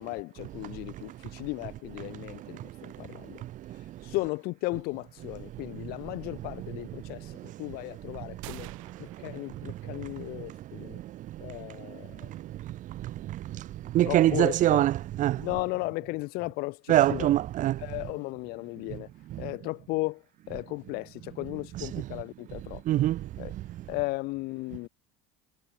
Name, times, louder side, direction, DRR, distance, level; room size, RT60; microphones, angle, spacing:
voice 1, 0.0-3.4 4.0-8.7 9.0-11.0 11.4-12.3 14.0-14.9 15.4-17.3 17.8-19.1 19.4-23.1 23.4-23.5 23.9-24.9, left 23 dB, 65° left, 4.2 m, -35 dB
voice 2, 2.5-2.9 3.2-4.0 9.1-9.2 9.9-10.0 10.3-10.4 10.8-11.6 11.9-15.5 16.9-17.8 19.3-19.4 21.9-22.0 22.9-23.5, right 14 dB, 50° right, 1.1 m, -27 dB
sound 1, 8.4-10.3, right 22 dB, 80° right, 5.6 m, -48 dB
supercardioid pair, 95°, 17 cm